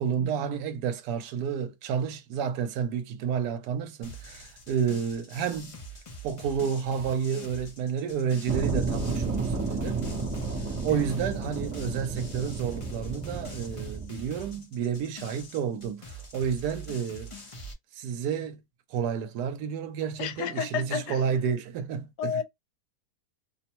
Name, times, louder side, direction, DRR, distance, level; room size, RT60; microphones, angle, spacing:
voice 1, 0.0-5.8 6.2-10.0 10.8-17.3 17.9-18.6 18.9-22.3, right 7 dB, 80° right, 1.1 m, -30 dB
sound 1, 4.0-17.7, right 1 dB, 45° left, 0.4 m, -44 dB
sound 2, 8.5-14.1, right 3 dB, 15° right, 0.5 m, -32 dB
voice 2, 20.2-21.2 22.2-22.4, left 8 dB, 85° left, 1.1 m, -31 dB
2.8 x 2.0 x 2.9 m
omnidirectional pair, 1.7 m